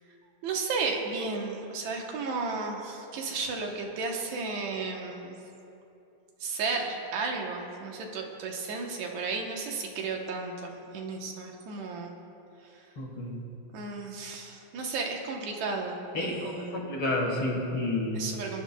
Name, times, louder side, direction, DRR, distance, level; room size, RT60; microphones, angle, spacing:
voice 1, 0.4-5.4 6.4-12.1 13.7-16.8 18.2-18.6, right 4 dB, 75° right, 1 dB, 2.4 m, -33 dB
voice 2, 13.0-13.4 16.1-18.3, left 2 dB, 50° left, -2 dB, 2.2 m, -30 dB
24.5 x 10.5 x 2.3 m, 2.8 s
omnidirectional pair, 3.3 m